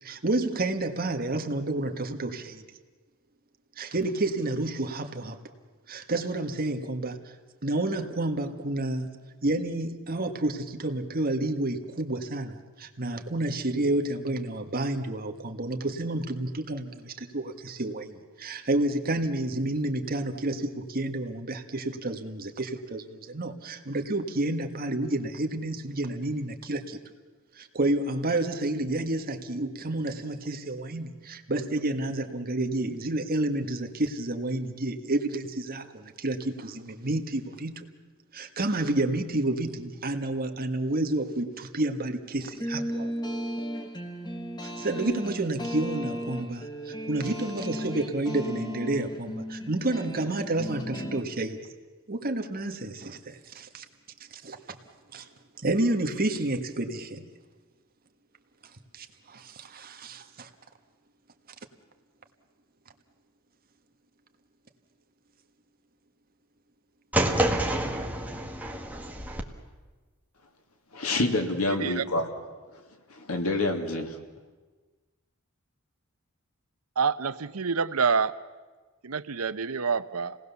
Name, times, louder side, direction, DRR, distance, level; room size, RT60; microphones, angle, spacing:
voice 1, 0.0-2.6 3.8-5.4 5.9-7.2 7.6-9.1 9.4-27.0 27.6-37.9 38.3-43.1 44.6-51.6 52.1-53.8 54.3-54.8 55.1-55.3 55.6-57.3 58.9-60.5, right 2 dB, 45° right, 6 dB, 1.7 m, -30 dB
sound 1, 42.4-51.2, equal, 20° left, 1.8 m, -35 dB
sound 2, 67.1-69.4, right 1 dB, 5° right, 1.7 m, -28 dB
voice 2, 70.9-72.3 73.1-74.2, left 2 dB, 85° left, 4 dB, 2.6 m, -27 dB
voice 3, 77.0-78.3 79.0-80.4, right 5 dB, 80° right, 13 dB, 0.9 m, -27 dB
28.5 x 19.0 x 7.0 m, 1.3 s
head